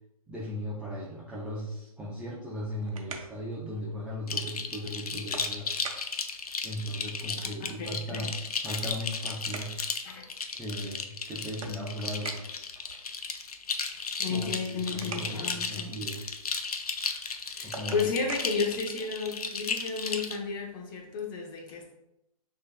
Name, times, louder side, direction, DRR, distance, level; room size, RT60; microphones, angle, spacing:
voice 1, 0.3-5.7 6.6-9.9 10.5-12.4 14.3-16.2 17.6-18.0, equal, 5° right, -6 dB, 0.4 m, -37 dB
sound 1, 2.5-19.5, right 4 dB, 60° right, 0.7 m, -48 dB
sound 2, 4.3-20.4, left 5 dB, 75° left, 0.5 m, -35 dB
voice 2, 7.6-8.3 10.0-10.2 14.2-15.9 17.5-21.9, left 4 dB, 35° left, 1 dB, 0.8 m, -33 dB
6.2 x 2.8 x 2.4 m, 0.85 s
figure-of-eight pair, 130°, 19 cm